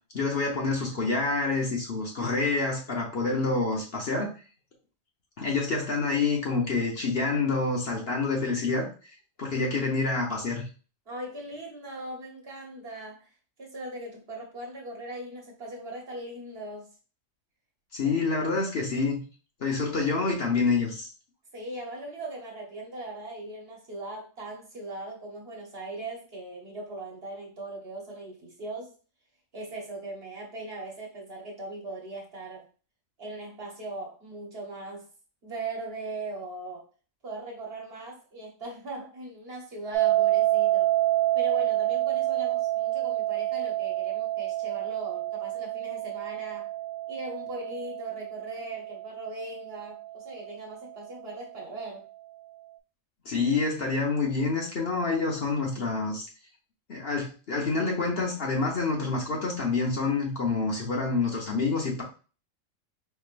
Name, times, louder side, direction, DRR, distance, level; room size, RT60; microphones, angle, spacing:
voice 1, 0.1-4.3 5.4-8.9 9.4-10.6 17.9-19.2 19.6-21.1 53.2-56.2 56.9-62.0, left 3 dB, 50° left, -1 dB, 1.1 m, -27 dB
voice 2, 11.1-13.3 13.6-16.9 18.0-18.1 21.5-28.9 29.5-32.7 33.2-35.1 35.4-36.8 37.2-40.9 41.3-46.7 47.1-52.0, right 2 dB, 50° right, 0 dB, 1.2 m, -39 dB
sound 1, 39.9-50.9, right 15 dB, 70° right, 0.9 m, -28 dB
4.5 x 3.0 x 2.5 m, 0.36 s
omnidirectional pair, 1.4 m